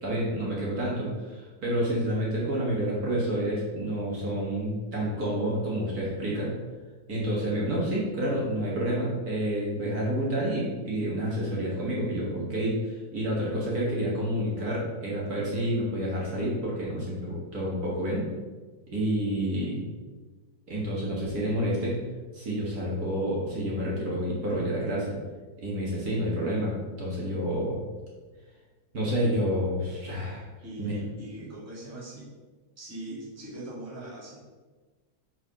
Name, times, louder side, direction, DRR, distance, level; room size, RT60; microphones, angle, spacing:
voice 1, 0.0-6.5 7.1-18.3 18.9-19.8 20.7-22.0 22.3-25.2 25.6-27.8 28.9-30.4 30.8-30.9, equal, 55° right, -5 dB, 2.0 m, -29 dB
voice 2, 30.6-32.3 32.8-34.4, right 1 dB, 10° right, -7 dB, 1.7 m, -41 dB
5.3 x 4.7 x 5.6 m, 1.3 s
omnidirectional pair, 2.0 m